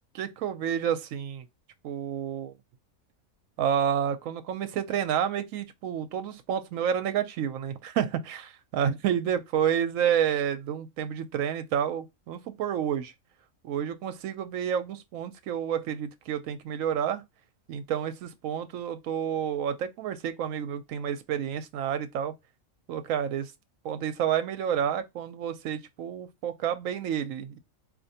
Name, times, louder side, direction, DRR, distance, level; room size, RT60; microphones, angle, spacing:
voice 1, 0.1-1.5 1.8-2.5 3.6-13.1 13.6-17.2 17.7-22.3 22.9-23.5 23.8-27.6, right 9 dB, 75° right, 1.0 m, -29 dB
4.3 x 2.6 x 2.7 m
omnidirectional pair, 1.4 m